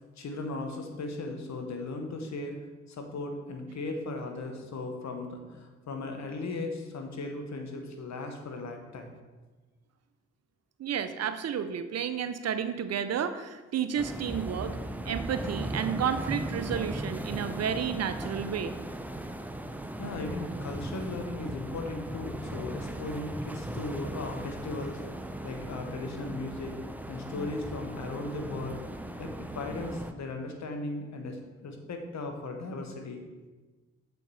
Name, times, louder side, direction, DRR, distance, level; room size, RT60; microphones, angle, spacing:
voice 1, 0.2-2.5 2.9-9.2 20.0-25.0 25.4-26.8 27.1-28.8 29.2-33.2, left 2 dB, 65° left, 4 dB, 1.2 m, -37 dB
voice 2, 10.8-14.8 15.1-18.7, right 8 dB, 55° right, 10 dB, 0.6 m, -31 dB
sound 1, 14.0-30.1, right 1 dB, 5° right, 0.6 m, -37 dB
7.0 x 4.6 x 4.1 m, 1.3 s
supercardioid pair, 50°, 30 cm